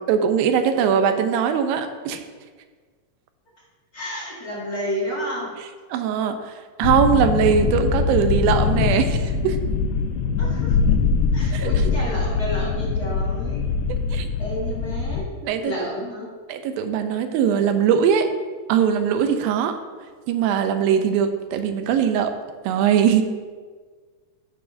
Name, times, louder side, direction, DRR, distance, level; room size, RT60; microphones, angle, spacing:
voice 1, 0.1-2.2 5.9-6.5 6.8-9.6 11.5-11.9 14.1-14.3 15.4-15.9 16.5-18.3 18.7-19.8 20.3-22.3 22.7-23.2, right 8 dB, 90° right, 8 dB, 2.4 m, -21 dB
voice 2, 3.9-5.5 10.4-10.8 11.3-13.6 14.4-15.3 15.6-16.3, equal, 40° left, -8 dB, 1.4 m, -30 dB
sound 1, 6.8-15.2, left 5 dB, 85° left, 1.8 m, -22 dB
13.0 x 4.8 x 2.6 m, 1.5 s
omnidirectional pair, 4.1 m